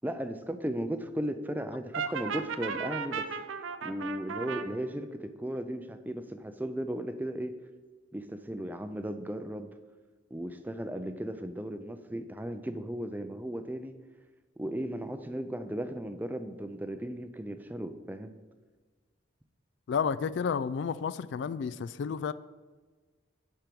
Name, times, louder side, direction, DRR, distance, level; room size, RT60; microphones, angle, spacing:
voice 1, 0.0-3.3 3.8-7.5 8.1-9.7 10.3-13.9 14.6-18.3, right 1 dB, 10° right, 9 dB, 0.4 m, -36 dB
Brass instrument, 1.9-4.7, right 6 dB, 85° right, 0.6 m, -35 dB
voice 2, 19.9-22.3, left 6 dB, 70° left, 16 dB, 0.3 m, -31 dB
10.5 x 4.5 x 5.2 m, 1.4 s
head